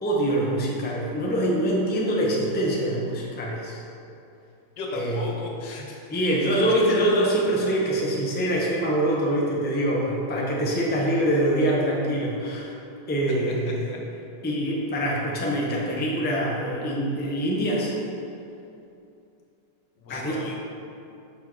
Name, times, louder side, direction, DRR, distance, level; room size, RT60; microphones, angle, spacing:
voice 1, 0.0-3.8 4.9-5.2 6.1-12.7 13.1-13.9 14.4-17.9 20.1-20.4, right 1 dB, 10° left, -3 dB, 0.5 m, -24 dB
voice 2, 4.8-6.0 13.9-14.0 20.0-20.6, left 2 dB, 85° left, 0 dB, 1.7 m, -35 dB
6.3 x 5.5 x 4.5 m, 2.7 s
omnidirectional pair, 1.9 m